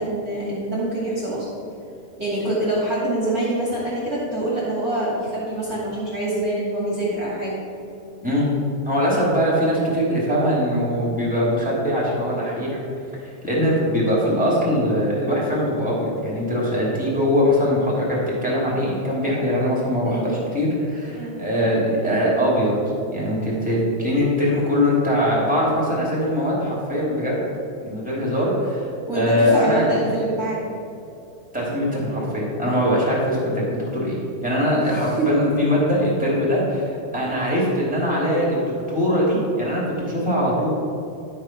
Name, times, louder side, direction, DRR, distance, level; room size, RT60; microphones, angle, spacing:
voice 1, 0.0-1.4 2.2-7.6 20.0-20.3 21.1-21.4 29.0-30.6 34.8-35.3, right 1 dB, 35° right, -7 dB, 1.6 m, -25 dB
voice 2, 8.8-12.8 13.4-22.7 23.1-27.4 27.8-28.9 29.1-30.1 31.5-36.8 37.1-38.6 38.9-40.7, equal, 5° right, -6 dB, 1.2 m, -21 dB
12.0 x 5.6 x 5.9 m, 2.6 s
omnidirectional pair, 5.0 m